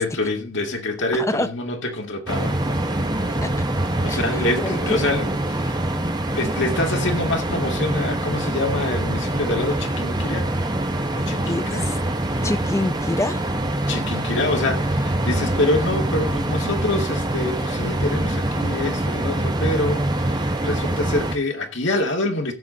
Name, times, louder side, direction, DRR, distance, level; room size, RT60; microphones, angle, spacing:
voice 1, 0.0-2.6 4.0-6.0 6.3-10.5 11.1-11.9 13.9-22.5, left 2 dB, 60° left, 2.0 m, -26 dB
voice 2, 1.1-1.5 3.4-3.5 4.1-5.0 11.4-12.0 12.4-13.4, left 1 dB, 15° left, 0.6 m, -26 dB
sound 1, 2.3-21.3, right 1 dB, 20° right, 1.0 m, -24 dB
15.5 x 6.1 x 4.0 m
head